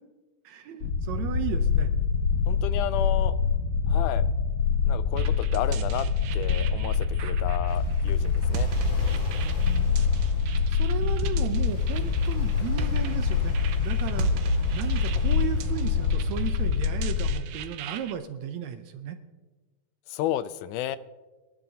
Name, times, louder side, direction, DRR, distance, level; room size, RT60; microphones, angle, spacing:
voice 1, 0.4-1.9 9.4-9.9 10.7-19.2, right 9 dB, 75° right, 8 dB, 1.8 m, -35 dB
sound 1, 0.8-17.3, left 6 dB, 65° left, 2.3 m, -25 dB
voice 2, 2.5-3.4 3.9-4.3 4.9-6.1 6.3-8.7 20.1-21.0, left 12 dB, 80° left, 14 dB, 2.0 m, -32 dB
sound 2, 5.2-18.1, right 8 dB, 90° right, 1.4 m, -38 dB
Waves surf, 7.7-16.8, left 1 dB, 40° left, 4.8 m, -48 dB
22.0 x 12.0 x 2.8 m, 1.2 s
omnidirectional pair, 3.7 m